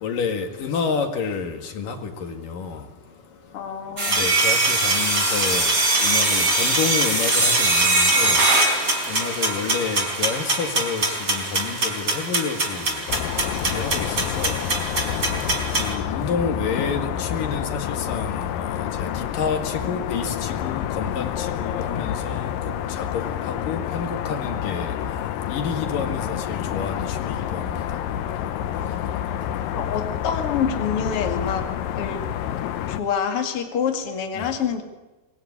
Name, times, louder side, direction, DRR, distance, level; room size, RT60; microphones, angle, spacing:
voice 1, 0.0-2.8 4.1-5.7 6.0-8.4 9.1-13.0 13.6-14.1 14.4-14.6 15.8-19.1 19.3-22.5 22.9-24.9 25.5-27.8 34.4-34.5, left 5 dB, 75° left, 5 dB, 3.7 m, -29 dB
voice 2, 3.5-4.3 29.7-31.7 31.9-32.2 32.9-34.8, left 7 dB, 45° left, 4 dB, 3.1 m, -26 dB
sound 1, 4.0-15.9, right 2 dB, 25° right, 4.5 m, -22 dB
sound 2, 13.1-33.0, left 10 dB, 90° left, 2.8 m, -28 dB
24.0 x 22.0 x 9.7 m, 1.1 s
omnidirectional pair, 3.9 m